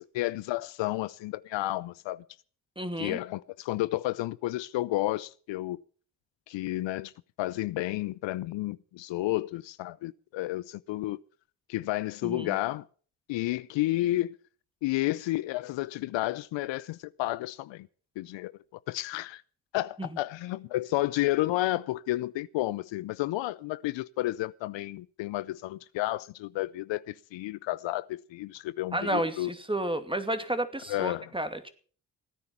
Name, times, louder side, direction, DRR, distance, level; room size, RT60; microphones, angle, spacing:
voice 1, 0.0-2.2 3.0-5.8 6.5-7.1 7.4-11.2 11.7-12.8 13.3-14.3 14.8-17.9 18.2-18.5 18.9-19.4 19.7-29.5 30.9-31.2, left 17 dB, 70° left, 0.6 m, -31 dB
voice 2, 2.8-3.2 12.2-12.6 20.0-20.1 28.9-31.7, right 1 dB, 10° right, 2.4 m, -31 dB
17.0 x 9.6 x 6.0 m
hypercardioid pair, 45°, 46 cm